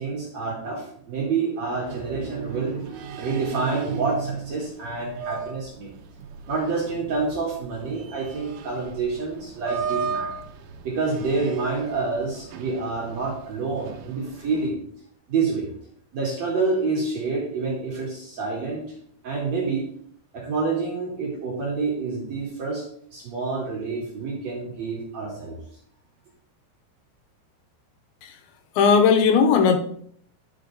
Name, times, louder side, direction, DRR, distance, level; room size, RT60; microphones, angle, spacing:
voice 1, 0.0-5.9 6.5-10.3 10.8-14.8 15.3-15.7 16.1-18.9 19.2-19.9 20.3-22.8 23.1-25.6, right 4 dB, 50° right, -3 dB, 2.4 m, -28 dB
sound 1, 1.9-14.7, right 6 dB, 75° right, 2.3 m, -37 dB
voice 2, 28.8-29.8, left 6 dB, 80° left, 7 dB, 3.1 m, -17 dB
10.5 x 5.8 x 3.9 m, 0.62 s
omnidirectional pair, 5.1 m